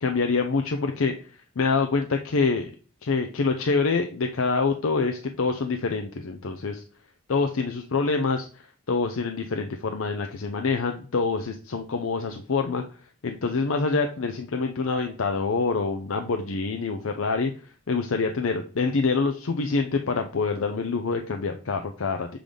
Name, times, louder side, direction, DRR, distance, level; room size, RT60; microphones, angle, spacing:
voice 1, 0.0-1.2 1.6-2.7 3.0-6.8 7.3-12.8 13.2-17.5 17.9-22.3, left 4 dB, 75° left, 5 dB, 0.6 m, -26 dB
6.8 x 3.8 x 5.1 m, 0.39 s
head